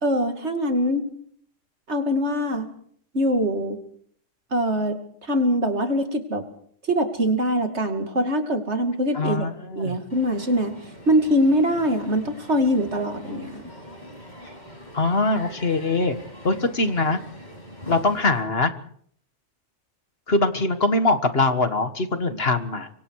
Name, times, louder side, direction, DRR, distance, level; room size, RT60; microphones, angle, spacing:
voice 1, 0.0-1.0 1.9-2.7 3.1-3.8 4.5-5.0 5.3-6.4 6.9-9.5 9.8-10.7 11.1-13.6, equal, 55° right, 6 dB, 2.8 m, -23 dB
voice 2, 9.1-10.0 14.9-16.2 16.4-17.2 17.9-18.7 20.3-22.9, left 2 dB, 50° left, 9 dB, 1.8 m, -22 dB
Crowd, 10.1-18.4, equal, 35° left, 7.7 m, -43 dB
26.0 x 25.0 x 4.8 m, 0.62 s
omnidirectional pair, 1.3 m